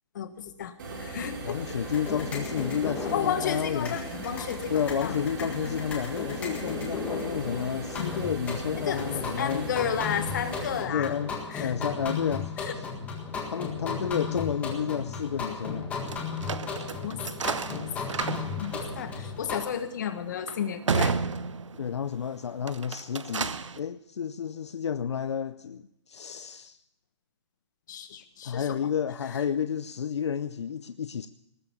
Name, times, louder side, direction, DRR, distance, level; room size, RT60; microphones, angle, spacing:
voice 1, 0.1-1.8 3.0-5.1 8.9-9.0 9.4-11.1 11.5-11.7 12.6-12.7 17.0-17.2 17.6-17.8 18.2-21.1 27.9-28.9 29.3-29.4, left 8 dB, 40° left, 1.5 m, -33 dB
sound 1, 0.8-10.8, right 2 dB, 45° right, 3.6 m, -38 dB
voice 2, 1.4-4.0 4.7-9.7 10.9-12.9 13.5-15.9 21.8-26.8 28.4-31.3, left 7 dB, 65° left, 0.6 m, -31 dB
sound 2, 1.8-19.6, left 5 dB, 10° left, 1.7 m, -35 dB
sound 3, 16.1-22.1 22.6-23.8, right 5 dB, 90° right, 1.0 m, -33 dB
19.5 x 6.9 x 9.9 m
hypercardioid pair, 165°, 15 cm